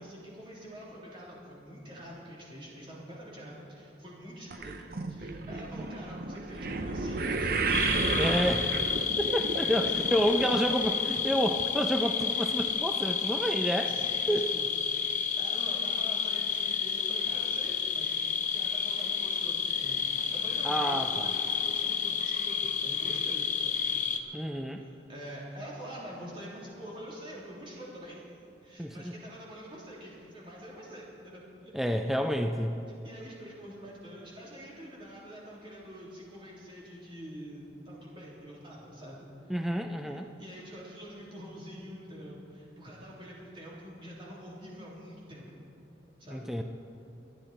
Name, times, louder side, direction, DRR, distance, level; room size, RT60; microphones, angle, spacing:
voice 1, 0.0-8.0 8.6-8.8 9.5-11.1 12.3-12.4 13.8-18.1 18.4-28.3 28.6-31.7 32.1-32.4 32.9-39.6 40.0-45.5 46.2-46.6, equal, 30° right, -5 dB, 3.5 m, -46 dB
sound 1, 4.5-10.9 11.2-11.6 12.2-12.3 12.6-12.7, right 3 dB, 50° right, 0.7 m, -32 dB
sound 2, 7.7-24.2, left 7 dB, 40° left, 0.9 m, -30 dB
voice 2, 8.2-8.6 9.2-13.9 14.3-14.5 20.6-21.3 24.3-24.8 28.8-29.1 31.7-32.8 39.5-40.3 46.3-46.6, equal, ahead, 4 dB, 0.5 m, -29 dB
25.0 x 10.5 x 4.4 m, 2.7 s
head